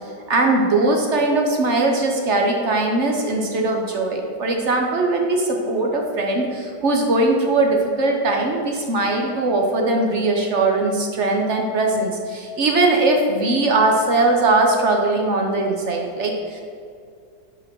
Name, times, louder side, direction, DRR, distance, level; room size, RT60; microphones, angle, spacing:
voice 1, 0.3-16.6, right 2 dB, 50° right, 1 dB, 0.9 m, -20 dB
5.5 x 5.4 x 5.9 m, 2.3 s
omnidirectional pair, 2.0 m